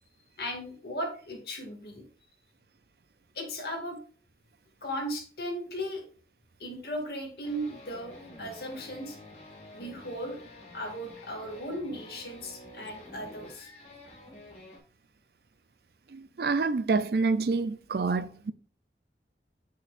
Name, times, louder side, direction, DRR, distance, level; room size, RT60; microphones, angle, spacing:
voice 1, 0.4-2.0 3.3-4.0 4.8-6.0 6.6-9.2 9.7-10.4 10.7-13.7, equal, 60° left, 2.3 m, -36 dB
sound 1, 7.4-14.8, left 1 dB, 35° left, 2.0 m, -49 dB
voice 2, 16.1-18.5, right 4 dB, 60° right, 0.4 m, -27 dB
8.5 x 6.1 x 2.5 m
head